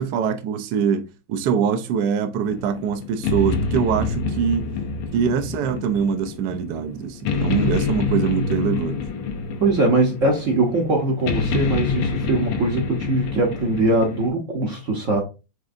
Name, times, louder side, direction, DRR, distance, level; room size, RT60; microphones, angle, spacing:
voice 1, 0.0-4.7 5.1-9.0, right 7 dB, 80° right, 0.9 m, -23 dB
sound 1, 2.4-14.3, left 4 dB, 85° left, 1.7 m, -27 dB
voice 2, 9.6-15.2, right 2 dB, 55° right, 0.9 m, -21 dB
6.3 x 3.3 x 2.5 m
omnidirectional pair, 2.4 m